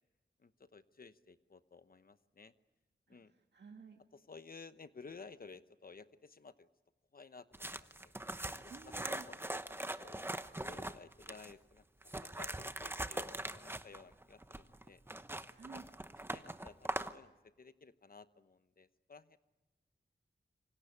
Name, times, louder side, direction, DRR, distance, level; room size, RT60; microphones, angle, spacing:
voice 1, 0.4-2.5 3.1-3.3 4.1-6.7 7.1-8.1 8.6-10.3 10.6-11.8 12.1-15.0 15.7-15.8 16.3-19.4, left 4 dB, 50° left, 11 dB, 0.9 m, -55 dB
voice 2, 3.1-4.0 8.7-9.3 15.5-15.9, right 5 dB, 70° right, 3 dB, 1.8 m, -53 dB
sound 1, 7.5-11.5 12.0-17.2, right 1 dB, 10° right, 1.0 m, -42 dB
27.0 x 25.0 x 8.2 m, 1.1 s
wide cardioid pair, 110°, 19 cm